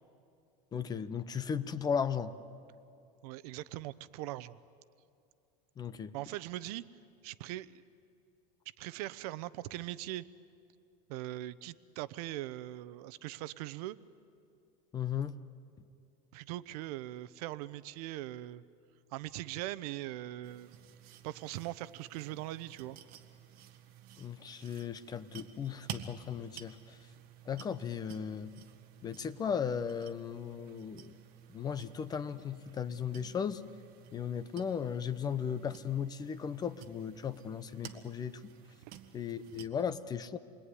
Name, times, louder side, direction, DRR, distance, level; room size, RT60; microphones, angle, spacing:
voice 1, 0.7-2.3 5.8-6.1 14.9-15.4 24.2-27.0 27.5-28.5 29.0-31.1 31.5-33.6 34.1-38.5 39.1-40.4, left 7 dB, 20° left, 13 dB, 0.7 m, -36 dB
voice 2, 3.2-4.6 6.1-6.8 7.2-7.8 8.8-10.2 11.1-14.0 16.3-18.6 19.1-20.8 21.2-23.0 38.9-39.0, right 15 dB, 70° right, 16 dB, 0.9 m, -41 dB
sound 1, 20.4-39.7, right 10 dB, 50° right, 1.8 m, -52 dB
28.5 x 21.5 x 9.8 m, 2.5 s
supercardioid pair, 160°, 20 cm